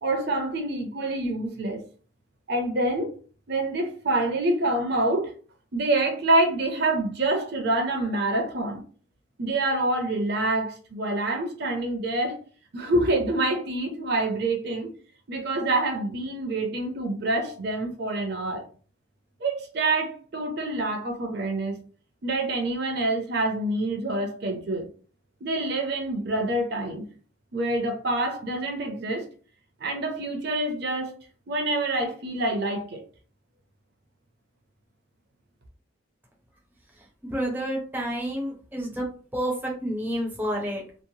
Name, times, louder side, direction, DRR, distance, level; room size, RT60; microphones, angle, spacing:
voice 1, 0.0-1.8 2.5-3.1 3.5-5.3 5.7-8.8 9.4-12.4 12.7-14.9 15.3-18.7 19.4-21.8 22.2-24.9 25.4-27.0 27.5-29.2 29.8-31.2 31.5-33.0, right 2 dB, 55° right, 0.6 m, -26 dB
voice 2, 37.2-39.1 39.3-40.8, equal, 10° right, 0.5 m, -29 dB
2.9 x 2.1 x 2.7 m
head